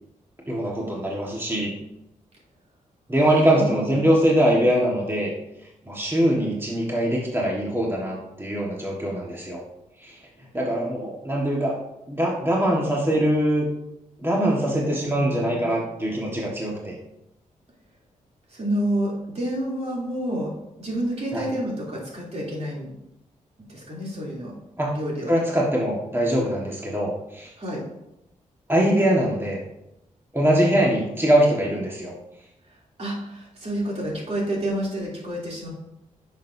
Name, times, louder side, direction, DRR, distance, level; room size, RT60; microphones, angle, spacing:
voice 1, 0.5-1.7 3.1-5.3 5.8-9.6 10.0-10.2 10.5-11.8 12.1-13.6 14.2-17.0 21.3-21.4 24.8-25.0 25.3-27.5 28.7-29.6 30.3-32.1, right 1 dB, 15° right, -3 dB, 1.6 m, -22 dB
voice 2, 3.1-4.1 18.5-20.5 20.8-22.9 23.6-24.5 24.9-25.3 27.6-27.8 32.7-35.7, right 1 dB, 50° right, -4 dB, 3.2 m, -29 dB
10.5 x 6.3 x 2.7 m, 0.86 s
cardioid pair, 85°, 14 cm